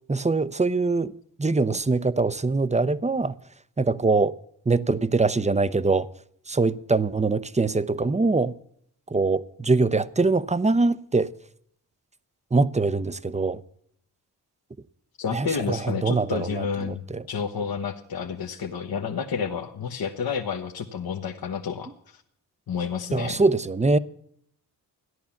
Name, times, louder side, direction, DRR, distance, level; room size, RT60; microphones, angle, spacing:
voice 1, 0.1-1.1 1.4-3.3 3.8-4.3 4.7-6.1 6.5-8.5 9.1-11.3 12.5-13.6 15.3-17.2 23.1-24.0, right 3 dB, 15° right, 0.7 m, -23 dB
voice 2, 15.2-22.2 22.7-23.4, left 6 dB, 60° left, 1.2 m, -30 dB
14.0 x 10.5 x 7.2 m
supercardioid pair, 45°, 42 cm